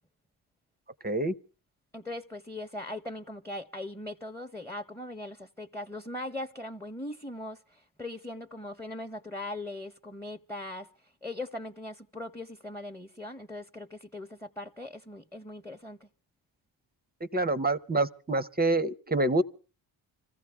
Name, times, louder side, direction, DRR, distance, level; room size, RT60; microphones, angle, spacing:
voice 1, 1.0-1.3 17.3-19.4, right 2 dB, 20° right, 0.7 m, -26 dB
voice 2, 1.9-16.1, left 1 dB, 5° left, 0.9 m, -40 dB
26.0 x 14.5 x 3.5 m
supercardioid pair, 50°, 49 cm